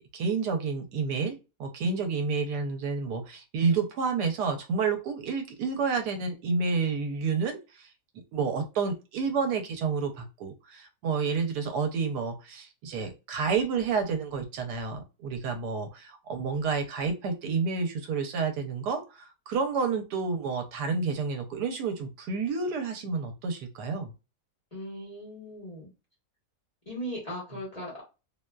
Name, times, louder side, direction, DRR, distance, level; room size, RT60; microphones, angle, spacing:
voice 1, 0.1-7.9 8.3-24.1, right 5 dB, 80° right, 6 dB, 1.1 m, -30 dB
voice 2, 24.7-25.9 26.9-28.0, equal, 30° left, -5 dB, 1.0 m, -38 dB
2.8 x 2.2 x 2.2 m, 0.28 s
omnidirectional pair, 1.7 m